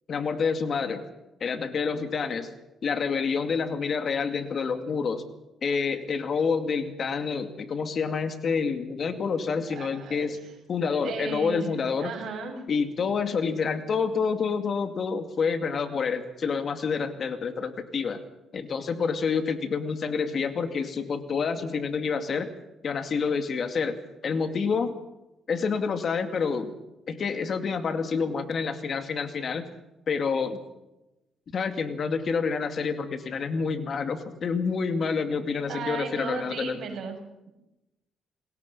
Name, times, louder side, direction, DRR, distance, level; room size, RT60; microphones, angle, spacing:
voice 1, 0.1-1.0 1.4-2.5 2.8-5.2 5.6-10.4 10.7-12.1 12.7-18.2 18.5-22.5 22.8-25.0 25.5-26.7 27.1-29.6 30.1-30.6 31.5-36.8, left 5 dB, 45° left, 8 dB, 2.4 m, -28 dB
voice 2, 9.7-10.5 10.9-12.6 35.7-37.2, right 5 dB, 65° right, 3 dB, 7.3 m, -36 dB
28.5 x 21.0 x 5.6 m, 0.94 s
cardioid pair, 125°, 0 cm